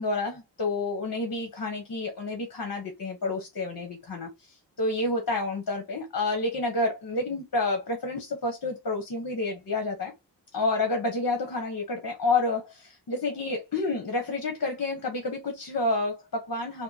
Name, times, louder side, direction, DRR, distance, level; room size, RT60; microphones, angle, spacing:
voice 1, 0.0-4.3 4.8-10.1 10.5-16.8, left 2 dB, 50° left, 1.2 m, -29 dB
3.7 x 2.2 x 4.0 m
wide cardioid pair, 115°, 43 cm